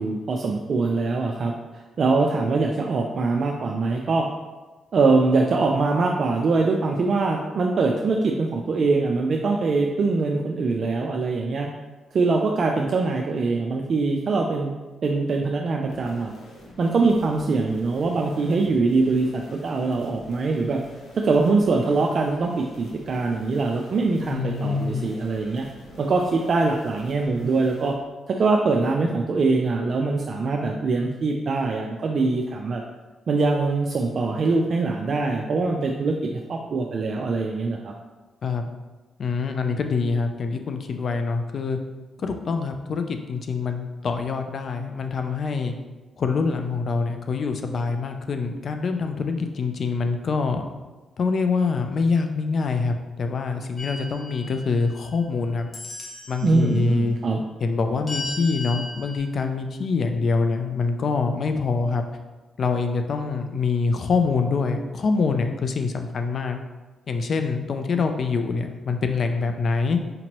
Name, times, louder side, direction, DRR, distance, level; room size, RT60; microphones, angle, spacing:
voice 1, 0.0-4.3 4.9-11.7 12.1-14.7 15.0-16.3 16.8-20.8 21.1-25.7 26.0-27.9 28.3-32.8 33.3-37.9 56.4-57.4, right 3 dB, 55° right, 1 dB, 0.3 m, -23 dB
sound 1, 15.9-27.9, left 1 dB, 85° left, 0.9 m, -46 dB
voice 2, 24.3-25.1 38.4-38.7 39.2-41.8 42.2-45.7 46.2-50.6 51.2-55.7 56.3-57.2 57.6-62.1 62.6-66.6 67.1-70.0, left 4 dB, 55° left, 6 dB, 0.4 m, -25 dB
sound 2, 53.8-55.3 55.7-56.6 58.1-59.2, left 2 dB, 40° left, 1.1 m, -36 dB
5.1 x 2.9 x 2.9 m, 1.2 s
cardioid pair, 75°, 0 cm